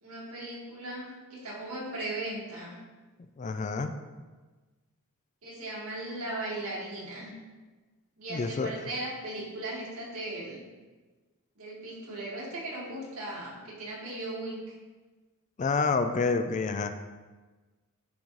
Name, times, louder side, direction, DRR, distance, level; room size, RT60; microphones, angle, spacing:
voice 1, 0.0-2.8 5.4-7.3 8.2-10.6 11.6-14.8, right 2 dB, 80° right, -5 dB, 2.0 m, -37 dB
voice 2, 3.4-3.9 8.3-8.7 15.6-16.9, left 4 dB, 35° left, 9 dB, 0.4 m, -28 dB
10.5 x 3.9 x 3.2 m, 1.3 s
head